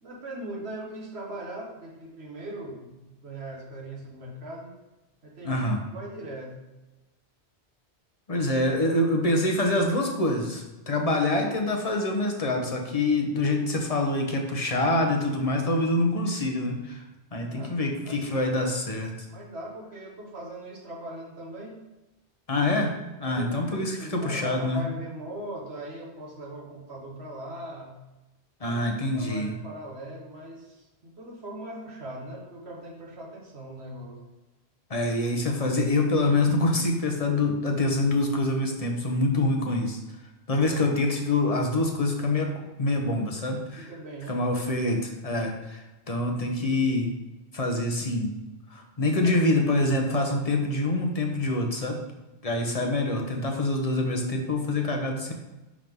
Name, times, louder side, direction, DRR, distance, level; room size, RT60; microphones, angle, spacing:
voice 1, 0.0-4.7 5.2-5.6 5.9-6.7 17.5-17.8 18.1-18.5 19.3-21.8 23.2-27.9 28.6-28.8 29.1-34.2 43.8-44.4 49.2-49.3, right 1 dB, 70° right, -2 dB, 1.8 m, -40 dB
voice 2, 5.4-5.8 8.3-17.0 17.3-19.1 22.5-24.8 28.6-29.5 34.9-40.0 40.5-43.9 44.3-47.1 47.5-48.3 48.7-52.0 52.4-55.3, left 2 dB, 35° left, 2 dB, 1.1 m, -26 dB
11.0 x 3.8 x 3.6 m, 1.0 s
omnidirectional pair, 1.1 m